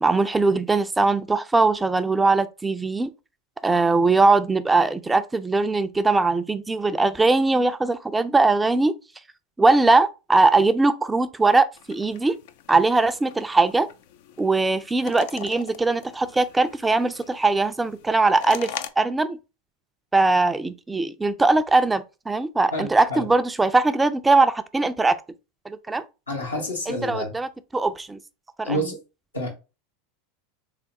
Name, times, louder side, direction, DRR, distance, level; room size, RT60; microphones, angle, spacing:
voice 1, 0.0-3.1 3.6-8.9 9.6-12.4 12.7-13.9 14.4-19.4 20.1-25.2 25.7-26.0 26.9-28.2 28.6-28.8, right 3 dB, 10° right, 0.4 m, -21 dB
sound 1, 11.8-18.9, left 9 dB, 60° left, 0.4 m, -41 dB
voice 2, 22.7-23.2 26.3-27.3 28.6-29.0 29.3-29.5, equal, 90° left, 1.3 m, -28 dB
3.6 x 3.3 x 2.8 m
hypercardioid pair, 85°, 0 cm